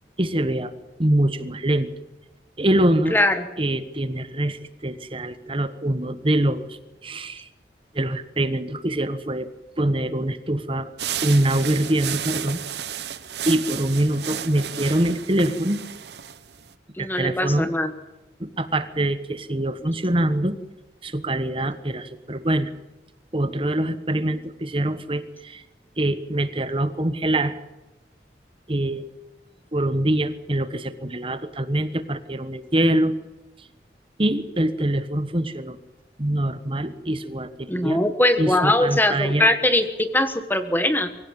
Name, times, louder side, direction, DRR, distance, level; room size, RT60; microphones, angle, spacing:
voice 1, 0.2-0.7 1.0-1.9 2.6-3.2 3.6-7.5 7.9-9.5 9.8-10.9 11.2-12.6 13.4-15.8 17.0-17.7 18.4-20.5 21.0-22.7 23.3-25.6 26.0-27.6 28.7-29.1 29.7-33.1 34.2-35.8 36.2-38.0 38.4-39.5, right 1 dB, 30° right, 12 dB, 1.3 m, -24 dB
sound 1, 11.0-16.7, right 9 dB, 75° right, 1.1 m, -32 dB
voice 2, 17.0-17.9 37.7-41.1, left 1 dB, 10° left, 9 dB, 1.4 m, -21 dB
24.5 x 16.5 x 8.9 m, 1.0 s
head